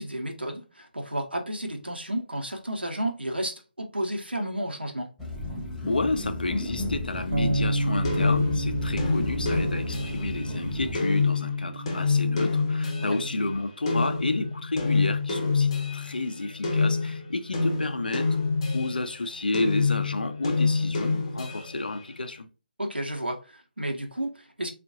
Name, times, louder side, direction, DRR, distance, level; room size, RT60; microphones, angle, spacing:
voice 1, 0.0-5.1 9.0-9.1 13.0-13.2 22.8-24.7, right 1 dB, 80° right, 0.9 m, -32 dB
sound 1, 5.2-10.9, left 2 dB, 5° left, 0.5 m, -34 dB
voice 2, 5.9-18.4 18.7-22.5, left 2 dB, 65° left, 0.5 m, -31 dB
Bass guitar, 7.3-13.6, right 1 dB, 55° right, 0.6 m, -31 dB
sound 2, 8.0-13.3 13.9-19.1 19.5-21.9, left 4 dB, 30° left, 0.9 m, -27 dB
4.4 x 2.5 x 2.7 m
figure-of-eight pair, 145°, 5 cm